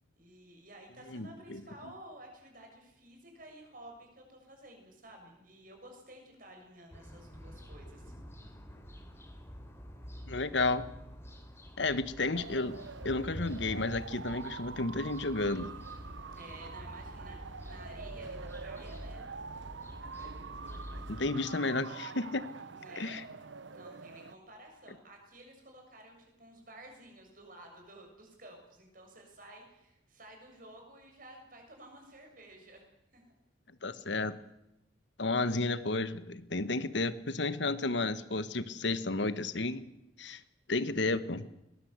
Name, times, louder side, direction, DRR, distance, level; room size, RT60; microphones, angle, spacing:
voice 1, 0.2-8.1 16.3-19.3 22.7-23.3 23.7-32.9 33.1-33.2, right 1 dB, 50° right, 3 dB, 7.1 m, -53 dB
voice 2, 1.1-1.6 10.3-10.9 11.8-12.8 13.0-15.7 21.1-22.4 23.0-23.2 33.8-34.4 35.2-39.9 40.2-40.4 40.7-41.5, left 3 dB, 70° left, 13 dB, 1.3 m, -32 dB
sound 1, 6.9-21.3, equal, 15° left, 3.5 m, -47 dB
sound 2, 12.3-24.4, right 4 dB, 80° right, 1.0 m, -46 dB
22.0 x 20.0 x 8.2 m, 0.87 s
head